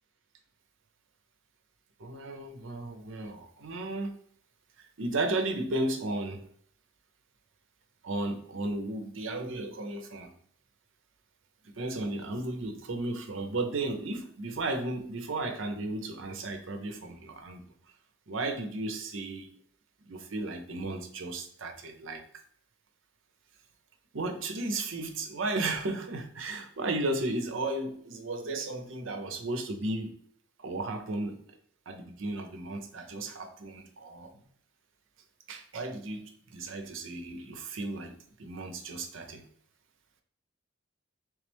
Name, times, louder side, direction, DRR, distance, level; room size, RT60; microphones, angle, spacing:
voice 1, 2.0-4.1 5.0-6.4 8.0-10.3 11.6-17.6 18.3-19.5 20.1-22.2 24.1-30.1 30.6-31.3 31.9-34.3 35.5-39.4, right 2 dB, 75° right, 5 dB, 0.6 m, -34 dB
3.3 x 3.2 x 3.4 m, 0.62 s
head